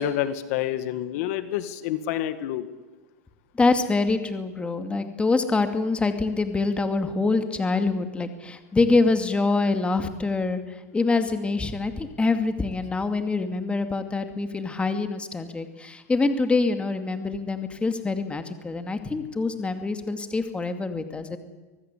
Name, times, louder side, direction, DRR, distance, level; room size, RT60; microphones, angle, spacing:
voice 1, 0.0-2.7, left 11 dB, 65° left, 11 dB, 1.8 m, -28 dB
voice 2, 3.5-21.4, left 3 dB, 10° left, 7 dB, 2.5 m, -25 dB
24.5 x 19.5 x 8.5 m, 1.2 s
hypercardioid pair, 120°, 9 cm